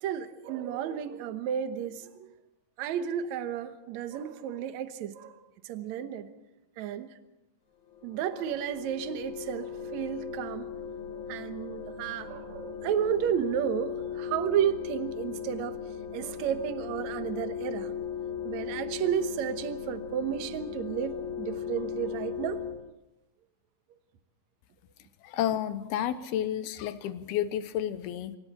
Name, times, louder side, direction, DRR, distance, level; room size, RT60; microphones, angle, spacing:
voice 1, 0.0-2.3 2.8-5.4 5.6-6.3 6.8-7.2 8.0-10.7 11.1-15.8 16.1-18.0 18.4-22.6, right 9 dB, 65° right, 1.9 m, -32 dB
sound 1, 7.9-22.7, left 8 dB, 55° left, 3.1 m, -37 dB
voice 2, 25.2-28.4, left 11 dB, 85° left, 2.9 m, -31 dB
25.5 x 25.0 x 4.3 m
omnidirectional pair, 4.4 m